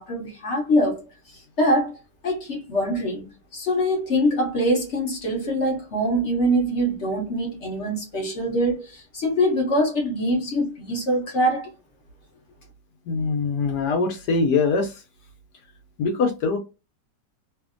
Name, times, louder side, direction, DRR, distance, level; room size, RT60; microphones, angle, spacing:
voice 1, 0.0-11.7, equal, 55° left, 0.8 m, -24 dB
voice 2, 13.1-15.0 16.0-16.6, left 4 dB, 70° left, 1.1 m, -23 dB
2.7 x 2.5 x 2.4 m
omnidirectional pair, 2.0 m